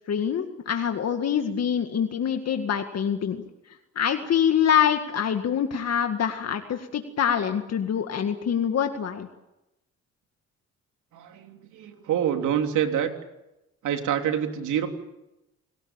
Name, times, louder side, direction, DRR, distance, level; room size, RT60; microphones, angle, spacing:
voice 1, 0.1-3.4 4.0-9.3, left 8 dB, 55° left, 6 dB, 2.0 m, -25 dB
voice 2, 11.1-13.1 13.8-14.9, right 9 dB, 80° right, 5 dB, 3.4 m, -26 dB
29.5 x 18.0 x 8.9 m, 0.94 s
cardioid pair, 90°, 30 cm